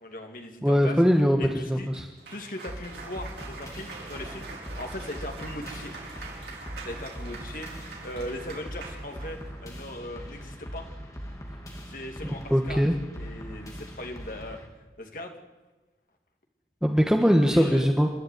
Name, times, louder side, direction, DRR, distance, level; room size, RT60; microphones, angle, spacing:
voice 1, 0.0-1.0 1.4-1.9 2.3-4.5 4.8-5.9 6.8-10.8 11.9-12.8 13.1-14.6 15.0-15.3 17.5-17.9, left 1 dB, 50° left, 3 dB, 2.8 m, -39 dB
voice 2, 0.6-2.0 12.2-12.9 16.8-18.1, equal, 5° right, 3 dB, 1.4 m, -21 dB
Cheering / Applause, 1.9-9.6, right 3 dB, 75° right, 5.2 m, -44 dB
sound 1, 2.7-14.7, equal, 20° left, 2.8 m, -41 dB
27.5 x 12.0 x 9.5 m, 1.2 s
head